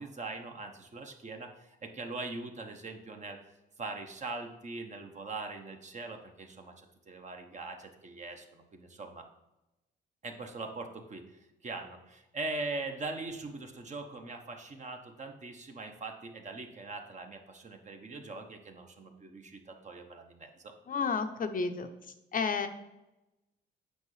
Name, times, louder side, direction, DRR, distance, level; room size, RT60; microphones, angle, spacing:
voice 1, 0.0-3.4 3.8-6.7 7.1-9.2 10.2-20.7, right 3 dB, 35° right, 4 dB, 1.0 m, -41 dB
voice 2, 20.9-21.9 22.3-22.7, left 5 dB, 45° left, 7 dB, 0.6 m, -31 dB
8.2 x 5.3 x 3.2 m, 0.96 s
cardioid pair, 90°, 20 cm